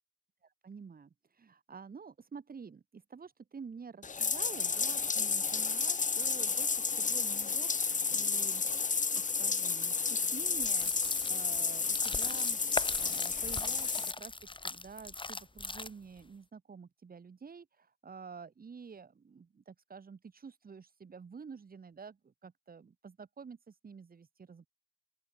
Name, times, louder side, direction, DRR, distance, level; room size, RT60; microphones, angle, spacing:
voice 1, 0.4-14.3 14.6-24.7, right 5 dB, 70° right, 4.0 m, -49 dB
Bathtub (filling or washing), 4.0-14.1, left 5 dB, 55° left, 1.3 m, -31 dB
sound 1, 10.6-16.2, left 2 dB, 30° left, 3.3 m, -41 dB
open air
cardioid pair, 55°, 16 cm